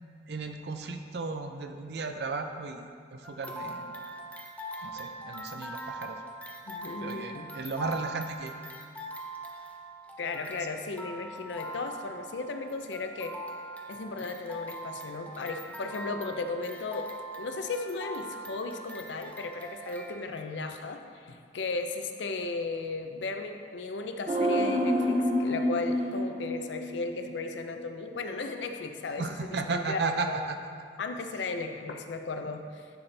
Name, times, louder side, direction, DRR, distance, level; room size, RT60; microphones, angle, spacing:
voice 1, 0.3-2.8 3.1-3.9 4.8-6.2 7.0-8.5 10.6-10.7 29.2-30.6 31.2-31.5, right 3 dB, 60° right, 6 dB, 0.5 m, -34 dB
sound 1, 3.2-20.2, right 1 dB, 10° left, 0.4 m, -42 dB
voice 2, 6.7-7.5 10.2-13.4 13.9-30.3 31.0-32.9, left 3 dB, 80° left, 6 dB, 0.5 m, -36 dB
sound 2, 24.3-27.6 27.8-27.9, equal, 35° right, 0.8 m, -28 dB
11.5 x 4.3 x 3.3 m, 2.2 s
head